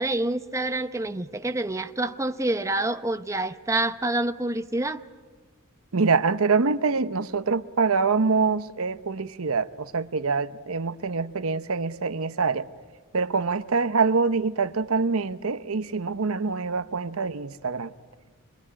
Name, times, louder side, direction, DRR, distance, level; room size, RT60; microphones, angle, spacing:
voice 1, 0.0-5.0, right 2 dB, 15° right, 0.8 m, -27 dB
voice 2, 5.9-12.6 13.1-17.9, right 4 dB, 70° right, 0.9 m, -25 dB
26.5 x 22.5 x 9.9 m
head